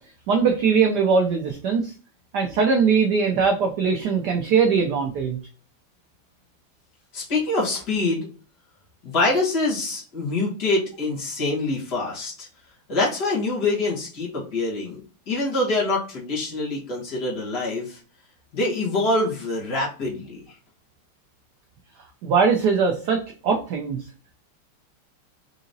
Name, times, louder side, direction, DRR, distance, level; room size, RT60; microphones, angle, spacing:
voice 1, 0.3-1.9 2.3-5.4 22.2-24.1, right 5 dB, 85° right, 3 dB, 0.9 m, -21 dB
voice 2, 7.1-8.3 9.0-12.5 12.9-15.0 15.3-18.0 18.5-20.4, left 2 dB, 55° left, -6 dB, 1.8 m, -25 dB
4.8 x 2.8 x 2.6 m, 0.39 s
omnidirectional pair, 2.4 m